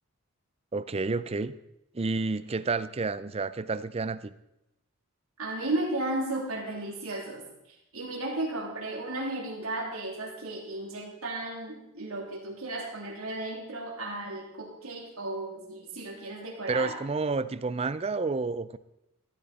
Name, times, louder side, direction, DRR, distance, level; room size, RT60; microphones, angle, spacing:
voice 1, 0.7-1.5 1.9-4.3 16.7-18.8, right 3 dB, 30° right, 15 dB, 0.5 m, -30 dB
voice 2, 5.4-7.4 7.9-17.0, right 2 dB, 70° right, -1 dB, 3.2 m, -34 dB
15.0 x 12.0 x 4.2 m, 0.86 s
head